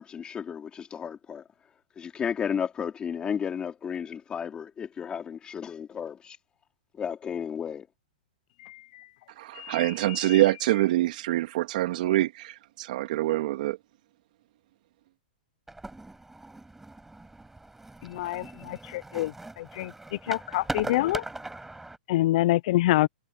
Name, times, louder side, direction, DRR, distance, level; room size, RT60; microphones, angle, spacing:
voice 1, 0.0-1.4 2.0-6.4 6.9-7.9, left 7 dB, 20° left, 4.1 m, -33 dB
voice 2, 9.4-13.8, right 15 dB, 60° right, 2.1 m, -25 dB
sound 1, 15.7-22.0, right 2 dB, 5° right, 5.2 m, -40 dB
voice 3, 18.2-18.8 19.1-19.3 19.8-19.9 20.3-21.2 22.1-23.1, left 16 dB, 55° left, 0.5 m, -25 dB
hypercardioid pair, 140°, 5 cm